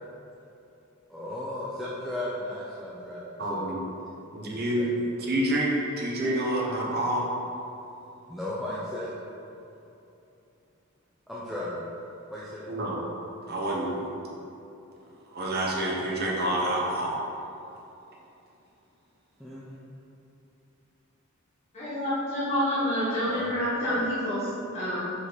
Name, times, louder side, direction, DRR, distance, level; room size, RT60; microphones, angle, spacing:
voice 1, 1.1-3.7 4.7-4.9 8.3-9.1 11.3-11.9 12.3-12.7 19.4-19.8 23.2-23.5 23.8-24.0, left 1 dB, ahead, -9 dB, 0.6 m, -35 dB
voice 2, 3.4-3.8 4.3-4.9 5.2-5.7 6.0-7.2 12.7-13.0 13.5-14.1 15.3-17.2, right 1 dB, 50° right, -3 dB, 1.1 m, -28 dB
voice 3, 21.7-25.1, equal, 35° left, -12 dB, 1.5 m, -28 dB
5.1 x 5.0 x 4.1 m, 2.8 s
head